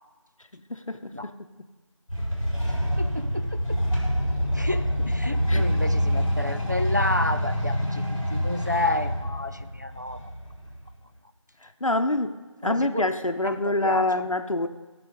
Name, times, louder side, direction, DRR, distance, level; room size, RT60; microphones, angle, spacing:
voice 1, 0.7-1.3 5.5-5.6 11.6-12.4 12.6-14.7, left 2 dB, 80° left, 8 dB, 0.9 m, -26 dB
sound 1, 2.1-11.0, equal, 10° left, 3.4 m, -26 dB
voice 2, 3.0-3.8 4.5-8.0 8.3-10.3 12.6-13.1 13.4-14.3, left 2 dB, 35° right, 10 dB, 0.4 m, -30 dB
15.0 x 6.9 x 5.4 m, 1.3 s
figure-of-eight pair, 175°, 17 cm